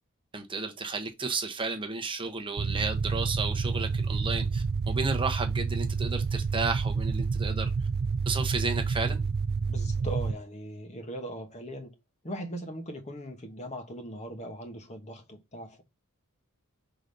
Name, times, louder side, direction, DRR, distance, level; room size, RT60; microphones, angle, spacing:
voice 1, 0.3-7.7 8.3-9.2, right 4 dB, 25° right, 0.9 m, -32 dB
sound 1, 2.6-10.3, right 4 dB, 45° right, 0.4 m, -29 dB
voice 2, 9.7-11.9 12.2-15.8, right 1 dB, 30° left, 1.1 m, -39 dB
4.9 x 3.9 x 5.3 m
head